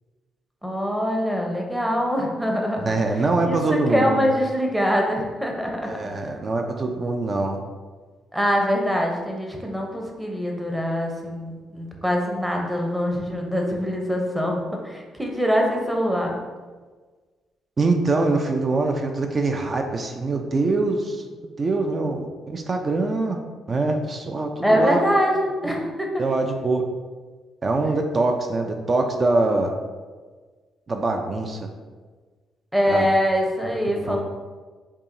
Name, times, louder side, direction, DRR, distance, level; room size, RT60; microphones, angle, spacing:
voice 1, 0.6-2.9 3.4-5.9 8.3-16.4 24.6-26.2 32.7-34.2, equal, 5° right, 0 dB, 0.7 m, -23 dB
voice 2, 2.8-4.3 5.8-7.6 17.8-21.2 21.6-23.4 23.7-25.0 25.6-25.8 26.2-26.8 27.6-29.7 30.9-31.7 32.9-33.1 33.7-34.2, right 3 dB, 35° right, 4 dB, 0.4 m, -24 dB
4.6 x 2.8 x 2.6 m, 1.4 s
cardioid pair, 90°, 0 cm